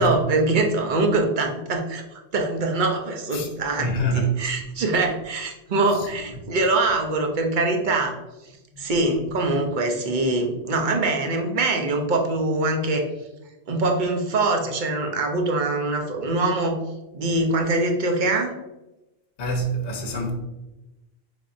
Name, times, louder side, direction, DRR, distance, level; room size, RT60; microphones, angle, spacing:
voice 1, 0.0-3.9 4.1-8.2 8.8-13.1 13.7-16.8 17.1-18.6, right 2 dB, 55° right, 0.7 m, -23 dB
voice 2, 3.8-4.4 5.9-6.1 8.7-9.3 19.4-20.3, right 1 dB, 65° left, 0.9 m, -26 dB
4.6 x 3.4 x 2.5 m
omnidirectional pair, 1.1 m